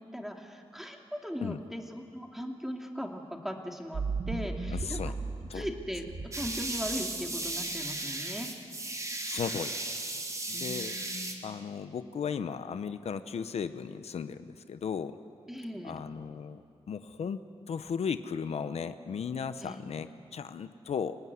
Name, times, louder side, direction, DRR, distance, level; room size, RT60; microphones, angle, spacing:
voice 1, 0.1-5.1 5.5-8.5 10.5-11.3 15.5-16.0 19.6-20.0, equal, 5° right, 3 dB, 2.5 m, -39 dB
sound 1, 3.9-7.5, right 4 dB, 60° right, 1.9 m, -37 dB
voice 2, 4.7-5.1 5.5-5.7 9.3-9.9 10.5-11.0 11.4-15.2 15.8-16.6 16.9-21.2, left 6 dB, 80° left, 11 dB, 0.9 m, -36 dB
sound 2, 6.3-11.3, right 2 dB, 30° right, 2.7 m, -36 dB
26.5 x 19.0 x 9.6 m, 2.4 s
wide cardioid pair, 105°, 11 cm